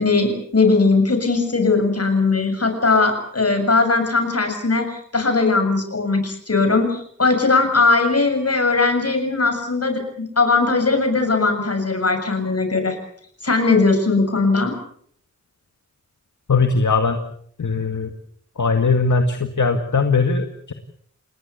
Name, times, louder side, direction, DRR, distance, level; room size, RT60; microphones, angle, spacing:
voice 1, 0.0-4.9 5.1-13.0 13.4-14.7, left 3 dB, 55° left, 7 dB, 7.4 m, -19 dB
voice 2, 16.5-17.2 17.6-18.1 18.6-20.7, left 4 dB, 75° left, 5 dB, 2.1 m, -19 dB
29.5 x 19.5 x 7.0 m, 0.63 s
wide cardioid pair, 85°, 30 cm